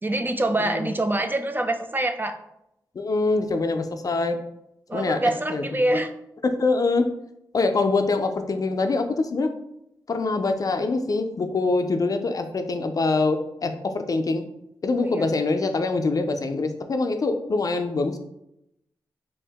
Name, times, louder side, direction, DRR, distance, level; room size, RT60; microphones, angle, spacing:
voice 1, 0.0-2.4 4.9-6.1 15.0-15.3, right 1 dB, 25° right, 7 dB, 0.4 m, -25 dB
voice 2, 3.0-4.4 4.9-5.2 5.5-6.0 6.6-7.1 7.5-9.5 10.1-14.4 14.8-18.2, left 3 dB, 45° left, 7 dB, 0.4 m, -24 dB
2.9 x 2.7 x 3.4 m, 0.81 s
supercardioid pair, 45°, 8 cm